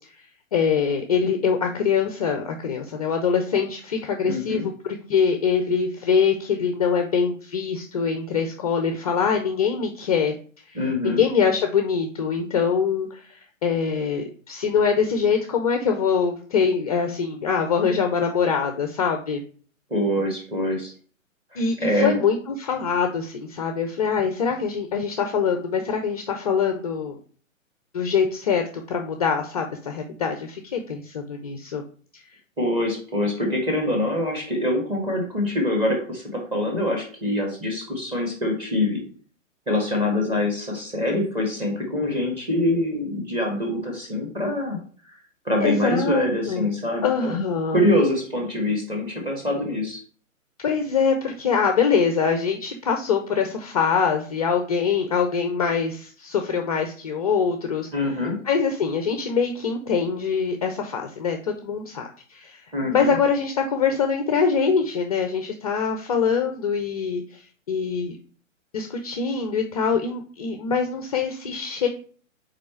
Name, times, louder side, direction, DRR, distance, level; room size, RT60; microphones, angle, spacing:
voice 1, 0.5-10.3 10.7-10.8 11.0-19.4 21.6-27.2 27.9-31.8 45.6-46.6 47.0-47.8 50.6-57.9 58.4-62.6 62.9-67.4 67.7-68.2 68.7-71.9, left 6 dB, 30° left, 5 dB, 0.5 m, -24 dB
voice 2, 4.2-4.7 10.7-11.2 19.9-20.9 21.5-22.2 32.6-39.0 39.7-44.8 45.0-45.1 45.4-47.4 47.7-50.0 57.9-58.4 62.7-63.2, left 1 dB, 15° right, 1 dB, 1.7 m, -24 dB
5.3 x 4.1 x 4.4 m, 0.44 s
figure-of-eight pair, 120°, 40 cm